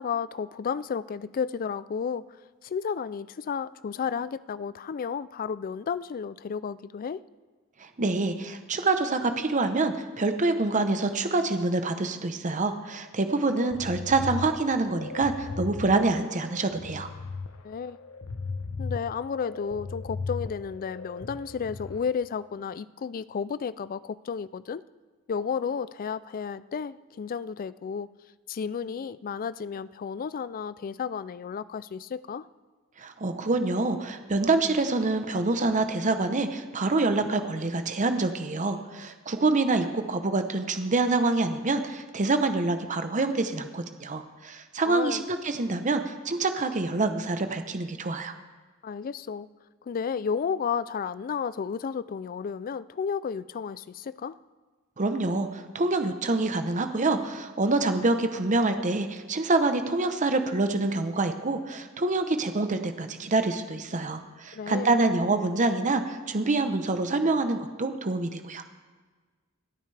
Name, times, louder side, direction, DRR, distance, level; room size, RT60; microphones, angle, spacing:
voice 1, 0.0-2.3 2.6-7.2 17.6-18.0 18.8-24.8 25.3-28.1 28.5-32.5 44.8-45.3 48.8-49.5 49.9-54.4 64.5-65.0, left 6 dB, 40° left, 17 dB, 0.3 m, -32 dB
voice 2, 7.8-17.1 33.0-48.3 55.0-68.6, right 3 dB, 35° right, 8 dB, 0.8 m, -26 dB
sound 1, 13.4-22.0, left 4 dB, 70° left, 0.8 m, -37 dB
27.0 x 9.0 x 3.3 m, 1.4 s
head